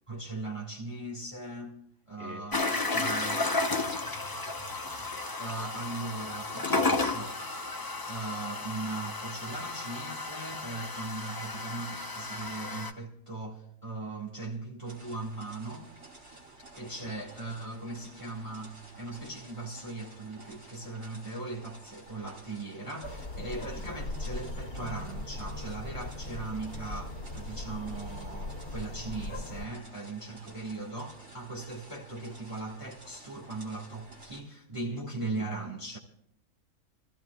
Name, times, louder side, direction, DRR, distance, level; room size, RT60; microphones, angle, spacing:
voice 1, 0.1-1.8 2.1-2.7 2.9-3.5 5.1-7.4 8.1-15.9 16.7-36.0, right 2 dB, 20° right, 1.7 m, -39 dB
voice 2, 2.2-4.1 17.0-17.1 23.5-23.7 29.9-30.0 34.9-35.0, left 1 dB, 85° right, 5.0 m, -48 dB
sound 1, 2.5-12.9, left 3 dB, 20° left, 0.6 m, -33 dB
sound 2, 14.8-34.4, right 2 dB, 40° right, 3.2 m, -52 dB
sound 3, 23.0-29.7, left 2 dB, 80° left, 2.4 m, -39 dB
26.0 x 14.5 x 2.3 m
omnidirectional pair, 1.5 m